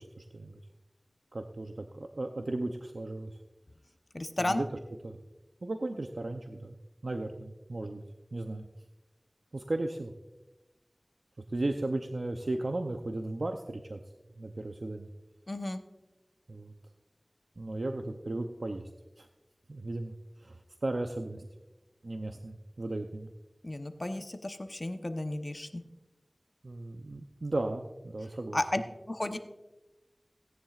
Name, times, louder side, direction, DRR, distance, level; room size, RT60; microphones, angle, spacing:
voice 1, 0.2-0.6 1.3-3.3 4.4-4.7 5.0-5.2 5.6-6.8 7.0-8.0 8.3-8.7 9.5-10.1 11.5-14.0 14.4-15.1 16.5-16.7 17.6-18.9 19.2-19.3 19.7-20.1 20.4-21.5 22.0-23.3 26.6-28.6, right 2 dB, 90° right, 4 dB, 0.6 m, -35 dB
voice 2, 4.1-4.6 15.5-15.8 23.6-25.8 28.5-28.8 29.1-29.4, left 1 dB, 50° left, 7 dB, 0.9 m, -33 dB
17.5 x 10.0 x 2.4 m, 1.0 s
wide cardioid pair, 50°, 0 cm